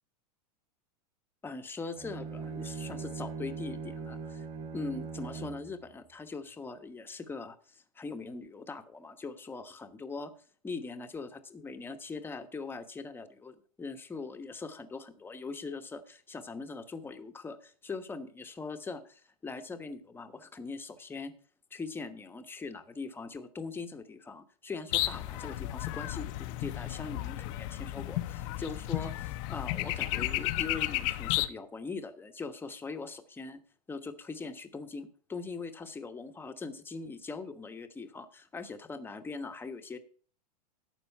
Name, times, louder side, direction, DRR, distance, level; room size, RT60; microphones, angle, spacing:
voice 1, 1.4-4.4 4.7-10.3 10.6-21.3 21.7-33.6 33.9-40.0, left 4 dB, 10° left, 7 dB, 1.1 m, -41 dB
Bowed string instrument, 1.9-5.7, right 5 dB, 35° right, 3.2 m, -40 dB
sound 1, 24.9-31.5, left 16 dB, 50° left, 0.8 m, -33 dB
12.0 x 8.1 x 4.5 m, 0.42 s
hypercardioid pair, 125°, 21 cm